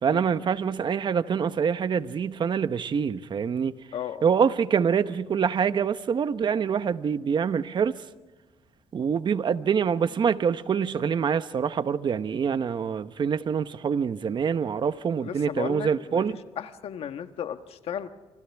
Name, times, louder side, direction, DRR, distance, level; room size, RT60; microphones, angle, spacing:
voice 1, 0.0-3.7 4.2-8.0 8.9-16.4, right 7 dB, 45° right, 1.0 m, -25 dB
voice 2, 3.9-4.2 15.2-15.9 16.1-16.2 16.6-18.1, left 9 dB, 70° left, 1.4 m, -34 dB
28.5 x 26.0 x 3.5 m
cardioid pair, 100°, 10 cm